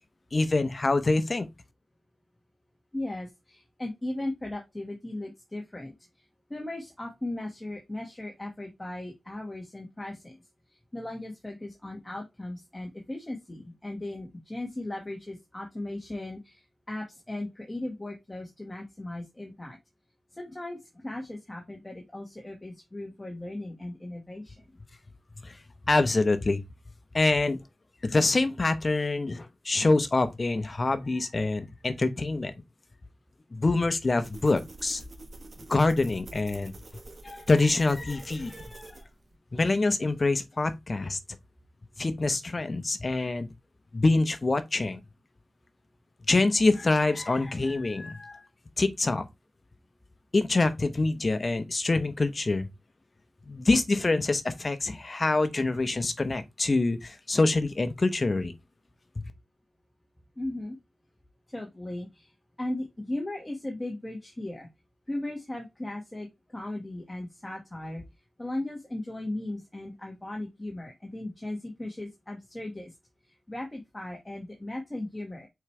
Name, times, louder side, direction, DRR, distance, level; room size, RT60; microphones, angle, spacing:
voice 1, 0.3-1.5 25.4-25.5 25.9-26.6 27.1-27.6 28.0-32.5 33.5-35.0 35.7-36.7 37.2-38.9 39.5-41.2 42.0-43.5 43.9-45.0 46.3-48.4 48.8-49.2 50.3-52.7 53.5-58.5, left 3 dB, 40° left, 1.0 m, -25 dB
voice 2, 2.9-5.9 6.5-10.4 10.9-19.8 20.3-24.6 60.4-60.7 61.5-62.3 62.6-64.7 65.1-68.0 68.4-72.9 73.5-75.5, left 1 dB, 15° left, 1.7 m, -37 dB
sound 1, 34.2-39.3, right 2 dB, 50° right, 1.4 m, -46 dB
6.4 x 4.9 x 3.3 m
wide cardioid pair, 85°, 0 cm